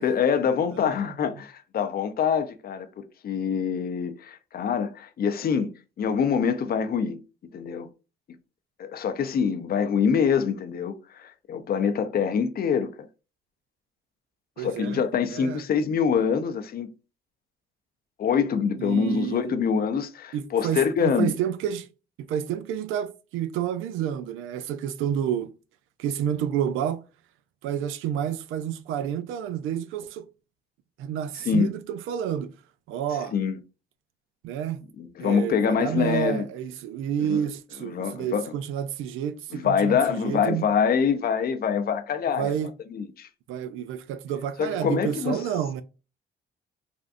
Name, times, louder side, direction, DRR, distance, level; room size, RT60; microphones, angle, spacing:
voice 1, 0.0-5.7 6.0-7.2 7.5-7.9 8.8-12.9 14.6-16.9 18.2-21.3 31.3-31.7 33.3-33.6 35.0-36.5 37.2-37.4 37.8-38.5 39.5-43.3 44.6-45.4, left 6 dB, 50° left, 0.6 m, -25 dB
voice 2, 14.6-15.0 15.3-15.6 18.8-19.4 20.3-21.9 22.2-25.5 26.0-27.0 27.6-30.3 31.0-32.5 32.9-33.3 34.4-34.8 35.2-40.6 42.4-42.7 43.5-45.8, right 9 dB, 90° right, 0.4 m, -29 dB
3.5 x 2.5 x 2.4 m
cardioid pair, 90°, 20 cm